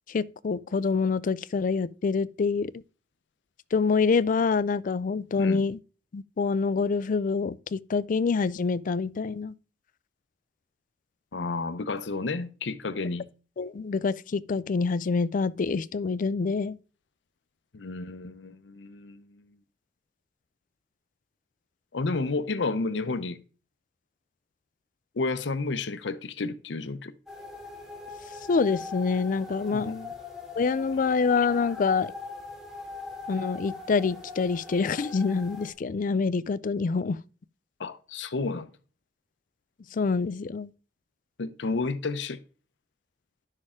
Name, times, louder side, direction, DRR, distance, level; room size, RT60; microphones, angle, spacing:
voice 1, 0.1-2.7 3.7-5.8 6.1-9.5 13.6-16.8 28.5-29.9 30.6-32.1 33.3-37.2 39.9-40.7, left 4 dB, 50° left, 0.4 m, -26 dB
voice 2, 11.3-13.3 17.7-19.4 21.9-23.4 25.1-27.1 29.7-30.1 37.8-38.7 41.4-42.4, left 3 dB, 80° left, 0.7 m, -31 dB
sound 1, 27.3-35.7, left 3 dB, ahead, 2.7 m, -41 dB
11.0 x 6.5 x 3.7 m
head